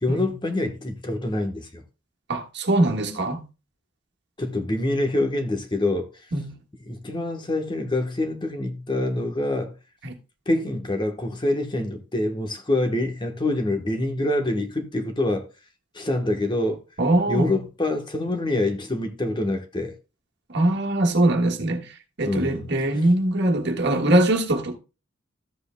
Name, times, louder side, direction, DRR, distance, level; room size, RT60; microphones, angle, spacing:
voice 1, 0.0-1.8 4.4-6.1 6.9-9.7 10.5-15.5 15.9-16.8 17.3-20.0 22.2-22.7, left 1 dB, 25° left, 1.2 m, -26 dB
voice 2, 2.3-3.4 6.3-6.5 10.0-10.1 17.0-17.6 20.5-21.9 22.2-24.8, right 1 dB, 60° right, 1.6 m, -22 dB
14.0 x 7.9 x 2.2 m
head